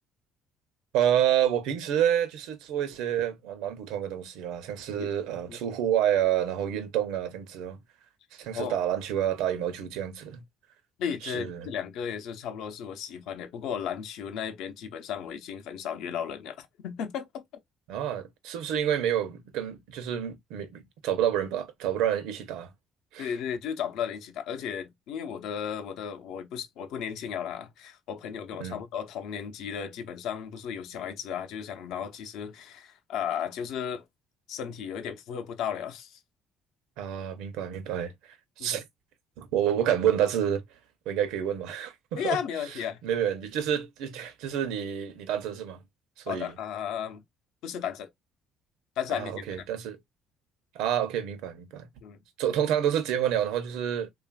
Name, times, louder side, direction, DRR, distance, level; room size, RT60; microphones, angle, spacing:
voice 1, 0.9-7.8 8.3-10.4 11.2-11.7 17.9-22.7 23.1-23.3 28.6-28.8 37.0-38.1 38.6-38.8 39.4-40.6 41.1-42.4 43.0-45.8 46.3-46.5 49.1-50.0 50.7-51.9 52.4-54.1, right 10 dB, 90° right, 0.7 m, -28 dB
voice 2, 11.0-17.4 23.2-34.0 34.5-36.2 38.6-38.8 42.1-43.0 46.3-47.2 47.6-48.1 49.0-49.4 52.0-52.2, left 8 dB, 70° left, 0.6 m, -34 dB
3.2 x 2.4 x 2.3 m
cardioid pair, 145°, 0 cm